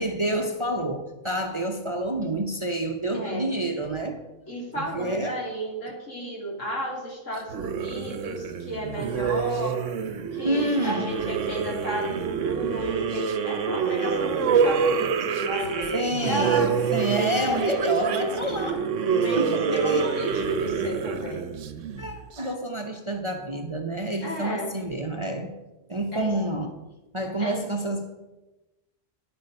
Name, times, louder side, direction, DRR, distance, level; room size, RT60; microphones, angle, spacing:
voice 1, 0.0-4.2 4.7-5.5 10.4-11.1 15.9-18.9 19.2-20.1 21.1-21.2 22.0-25.5 25.9-26.8 27.1-28.1, right 1 dB, 25° right, 0.8 m, -28 dB
voice 2, 4.5-9.8 10.3-16.7 19.1-21.5 24.2-24.7 26.1-26.3 27.4-27.7, right 1 dB, 75° left, 3.1 m, -33 dB
sound 1, 7.5-22.4, right 6 dB, 75° right, 1.1 m, -27 dB
10.0 x 8.7 x 5.4 m
omnidirectional pair, 1.3 m